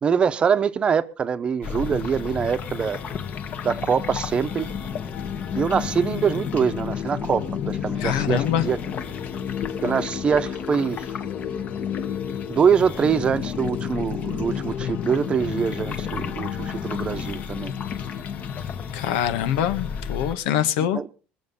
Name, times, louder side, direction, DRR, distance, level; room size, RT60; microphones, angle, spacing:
voice 1, 0.0-3.0 3.6-4.7 5.5-8.8 9.8-11.0 12.5-17.7 20.9-21.1, right 7 dB, 25° right, 1.0 m, -24 dB
sound 1, 1.6-20.4, left 7 dB, 40° left, 1.3 m, -31 dB
voice 2, 8.0-8.6 18.9-21.0, left 10 dB, 90° left, 1.5 m, -24 dB
23.0 x 7.7 x 5.5 m
cardioid pair, 150°, 4 cm